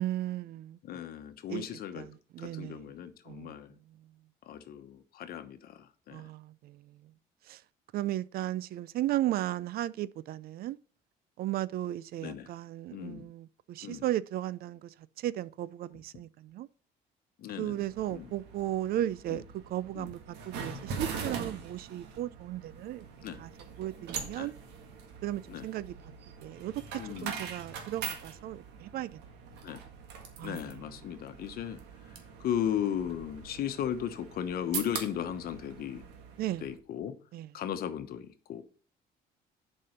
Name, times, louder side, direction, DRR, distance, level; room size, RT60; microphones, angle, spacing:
voice 1, 0.0-0.8 1.5-1.7 2.0-2.1 2.3-2.8 3.3-3.6 6.1-6.8 7.5-7.6 7.9-10.8 11.4-14.9 15.2-16.7 17.6-19.4 19.7-20.2 20.5-23.0 23.4-23.5 23.8-24.5 25.2-25.9 26.4-26.8 27.2-29.2 30.4-30.6 36.4-36.6 37.3-37.5, right 13 dB, 65° right, 0.5 m, -35 dB
voice 2, 0.8-2.1 2.4-3.8 4.4-6.3 12.2-12.5 12.9-13.3 13.8-14.0 15.9-16.0 17.4-17.8 18.1-18.3 19.3-19.4 19.9-20.1 23.2-23.4 24.4-24.5 25.5-25.7 26.9-27.5 28.9-29.0 29.6-29.8 30.4-36.0 36.6-37.1 37.5-38.6, left 9 dB, 60° left, 1.1 m, -36 dB
sound 1, 17.7-36.8, right 6 dB, 90° right, 1.7 m, -43 dB
7.6 x 5.5 x 5.6 m
cardioid pair, 110°, 17 cm